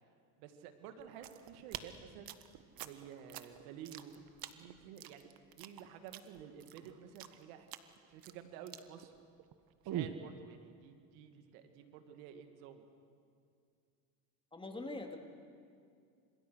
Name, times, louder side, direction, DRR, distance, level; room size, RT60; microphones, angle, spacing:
voice 1, 0.4-2.3 2.8-4.1 4.6-7.7 8.1-9.1 9.8-12.9, right 8 dB, 90° right, 7 dB, 2.5 m, -52 dB
sound 1, 1.0-9.5 9.8-10.2, right 11 dB, 55° right, 1.6 m, -45 dB
voice 2, 14.5-15.2, left 2 dB, 10° left, 3 dB, 3.5 m, -43 dB
30.0 x 26.5 x 6.5 m, 2.3 s
supercardioid pair, 105°, 41 cm